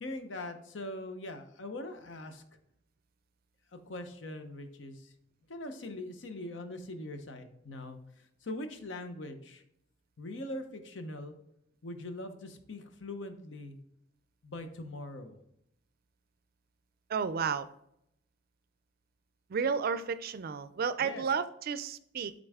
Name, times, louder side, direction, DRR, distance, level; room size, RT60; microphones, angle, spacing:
voice 1, 0.0-2.4 3.7-5.1 5.5-9.6 10.2-11.4 11.8-13.8 14.4-15.4 21.0-21.2, left 1 dB, 75° left, 8 dB, 0.8 m, -42 dB
voice 2, 17.1-17.7 19.5-22.3, right 6 dB, 50° right, 13 dB, 0.4 m, -32 dB
8.7 x 3.8 x 3.5 m, 0.76 s
head